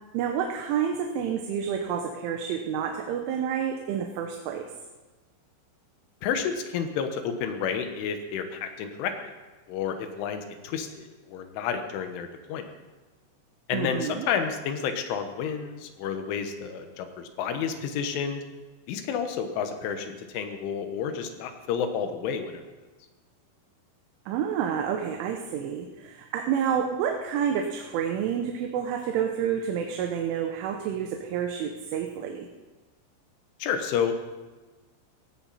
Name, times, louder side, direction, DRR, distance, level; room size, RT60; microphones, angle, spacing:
voice 1, 0.1-4.7 13.7-14.3 24.3-32.5, right 8 dB, 90° right, 3 dB, 3.5 m, -29 dB
voice 2, 6.2-9.1 9.7-12.7 13.7-18.4 18.9-22.6 33.6-34.1, left 7 dB, 85° left, 7 dB, 3.8 m, -30 dB
17.0 x 16.0 x 4.2 m, 1.2 s
omnidirectional pair, 5.4 m